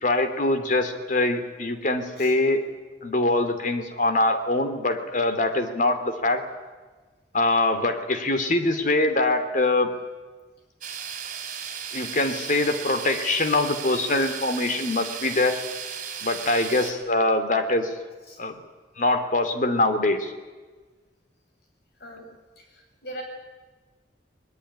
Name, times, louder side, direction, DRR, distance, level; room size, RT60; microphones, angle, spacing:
voice 1, 0.0-2.6 3.0-6.4 7.3-9.9 11.9-15.6 16.2-17.9 18.4-18.6 19.0-20.3, left 2 dB, 45° left, 8 dB, 2.8 m, -23 dB
sound 1, 10.8-16.9, right 8 dB, 45° right, 3.9 m, -35 dB
voice 2, 22.0-23.2, right 1 dB, 65° left, 2 dB, 7.3 m, -41 dB
21.0 x 21.0 x 10.0 m, 1.3 s
head